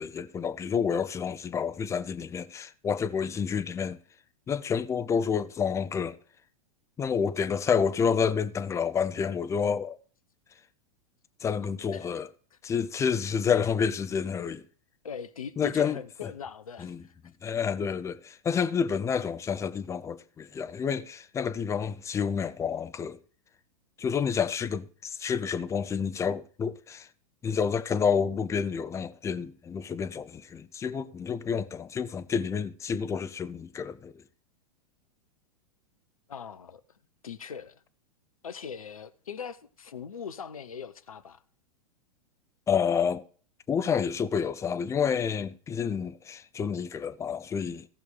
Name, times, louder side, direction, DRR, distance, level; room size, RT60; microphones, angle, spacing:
voice 1, 0.0-4.0 4.5-6.2 7.0-10.0 11.4-12.3 12.6-14.6 15.6-16.3 16.8-17.0 17.4-23.2 24.0-27.1 27.4-34.2 42.7-43.2 43.7-47.9, left 6 dB, 15° left, 0.6 m, -29 dB
voice 2, 11.6-12.1 15.0-17.2 36.3-36.8 37.2-37.8 38.4-41.4, left 7 dB, 70° left, 0.9 m, -41 dB
17.5 x 6.0 x 3.5 m
figure-of-eight pair, 100°, 19 cm